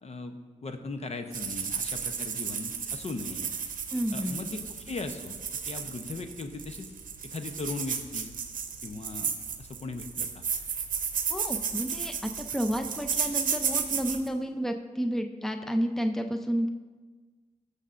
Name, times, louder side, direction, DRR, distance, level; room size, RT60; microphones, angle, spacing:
voice 1, 0.0-3.5 4.1-6.9 7.2-8.3 8.8-9.3 9.6-10.4, left 3 dB, 50° left, 6 dB, 0.8 m, -38 dB
sound 1, 1.3-14.3, right 6 dB, 85° right, 0.7 m, -33 dB
voice 2, 3.9-4.5 11.3-16.7, equal, 5° left, 5 dB, 0.6 m, -31 dB
18.5 x 6.7 x 2.5 m, 1.4 s
cardioid pair, 60°, 13 cm